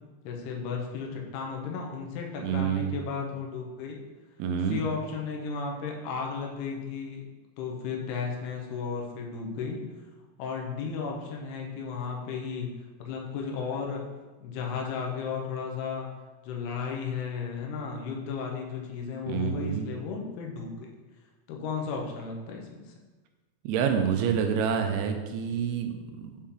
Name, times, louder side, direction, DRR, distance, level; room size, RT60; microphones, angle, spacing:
voice 1, 0.2-4.0 4.7-7.2 7.6-9.8 10.4-12.7 13.0-14.0 14.4-16.1 16.4-20.9 21.5-22.8, left 5 dB, 85° left, 1 dB, 2.9 m, -34 dB
voice 2, 2.4-2.9 4.4-4.8 19.3-19.9 23.6-26.3, right 7 dB, 90° right, 5 dB, 2.6 m, -28 dB
7.2 x 4.2 x 3.7 m, 1.2 s
omnidirectional pair, 4.4 m